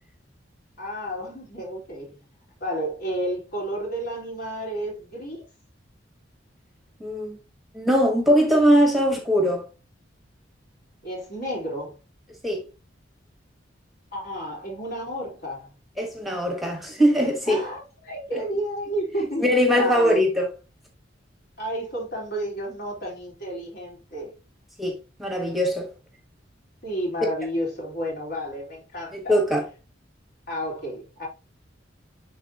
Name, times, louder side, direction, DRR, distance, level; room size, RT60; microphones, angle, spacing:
voice 1, 0.8-2.2 2.6-5.4 11.0-12.0 14.1-15.7 17.5-20.2 21.6-24.3 26.8-29.4 30.5-31.3, equal, 55° left, 3.8 m, -31 dB
voice 2, 7.0-7.4 7.7-9.6 12.4-12.6 16.0-17.6 19.4-20.5 24.8-25.9 29.1-29.6, equal, ahead, 1.3 m, -21 dB
11.0 x 3.8 x 2.8 m
head